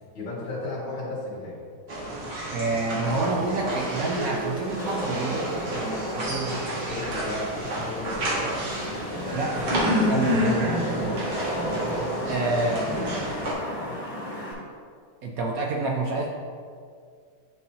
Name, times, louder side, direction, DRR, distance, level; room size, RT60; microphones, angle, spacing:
voice 1, 0.1-1.6 6.9-8.6 9.1-10.2 12.6-12.8 13.4-13.9, left 2 dB, 75° left, -8 dB, 2.6 m, -35 dB
sound 1, 1.9-13.5, equal, 60° right, 1.9 m, -30 dB
voice 2, 2.5-6.6 9.3-11.4 12.3-13.5 15.2-16.3, right 2 dB, 80° right, -1 dB, 0.8 m, -29 dB
Wind / Rain, 3.0-14.5, equal, 60° left, 1.8 m, -34 dB
10.0 x 4.1 x 2.8 m, 2.1 s
omnidirectional pair, 2.2 m